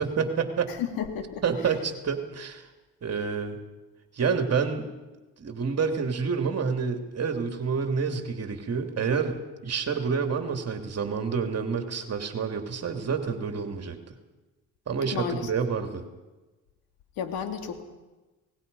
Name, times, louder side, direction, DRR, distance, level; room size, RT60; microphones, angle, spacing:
voice 1, 0.0-0.7 1.4-2.7 3.0-3.6 4.1-4.9 5.4-14.2 14.9-16.0, right 5 dB, 45° right, 5 dB, 3.0 m, -28 dB
voice 2, 0.7-1.4 15.1-15.5 17.2-17.8, left 8 dB, 75° left, 6 dB, 2.8 m, -32 dB
27.5 x 19.5 x 5.6 m, 1.1 s
cardioid pair, 85°, 35 cm